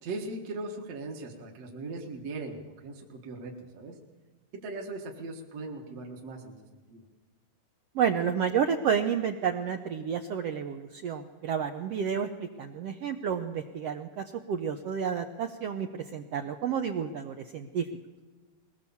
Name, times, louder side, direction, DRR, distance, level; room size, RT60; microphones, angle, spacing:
voice 1, 0.0-3.9 4.6-7.0, right 2 dB, 55° right, 0 dB, 2.5 m, -39 dB
voice 2, 7.9-17.8, right 7 dB, 75° right, 5 dB, 1.4 m, -30 dB
21.5 x 19.0 x 7.1 m, 1.3 s
omnidirectional pair, 3.8 m